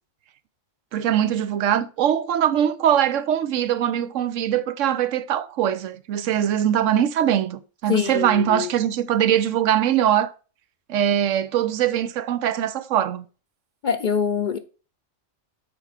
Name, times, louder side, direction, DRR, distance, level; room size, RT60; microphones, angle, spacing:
voice 1, 0.9-10.3 10.9-13.2, right 10 dB, 85° right, 1.0 m, -22 dB
voice 2, 7.9-8.7 13.8-14.6, left 7 dB, 50° left, 0.6 m, -24 dB
7.4 x 4.8 x 4.9 m
omnidirectional pair, 1.3 m